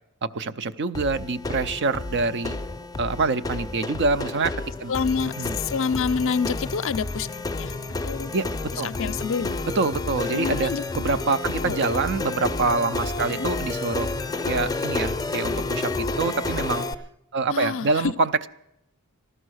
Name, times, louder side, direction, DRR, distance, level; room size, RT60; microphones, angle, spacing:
voice 1, 0.2-2.6 3.0-4.5 4.8-4.9 5.4-5.6 8.3-8.5 8.8-8.9 9.8-14.1 14.5-16.9 17.3-18.5, right 3 dB, 55° right, 12 dB, 0.5 m, -25 dB
sound 1, 0.9-16.9, left 3 dB, 15° left, 0.5 m, -30 dB
voice 2, 4.9-7.3 7.6-7.8 8.0-8.3 8.7-9.6 10.3-10.8 11.6-11.8 13.3-13.5 17.5-18.1, left 5 dB, 65° left, 13 dB, 0.5 m, -27 dB
14.5 x 12.5 x 6.3 m, 0.84 s
head